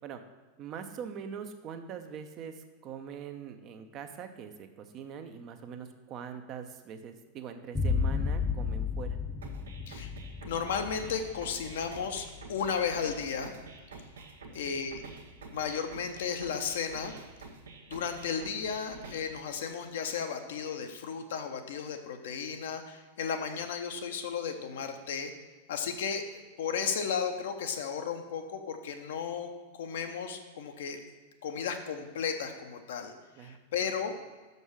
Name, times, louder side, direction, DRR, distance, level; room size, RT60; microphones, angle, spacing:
voice 1, 0.6-9.2 14.5-14.7 33.4-33.6, right 7 dB, 35° right, 7 dB, 0.7 m, -43 dB
sound 1, 7.7-15.1, left 5 dB, 5° left, 0.5 m, -34 dB
sound 2, 9.4-19.4, right 4 dB, 65° right, 0.8 m, -48 dB
voice 2, 10.4-13.5 14.0-14.1 14.5-15.0 15.5-17.1 17.9-25.3 25.7-26.2 26.6-29.5 29.8-31.0 31.4-33.1 33.4-34.2, left 6 dB, 60° left, 6 dB, 0.7 m, -34 dB
6.2 x 5.4 x 6.2 m, 1.3 s
figure-of-eight pair, 90°, 0 cm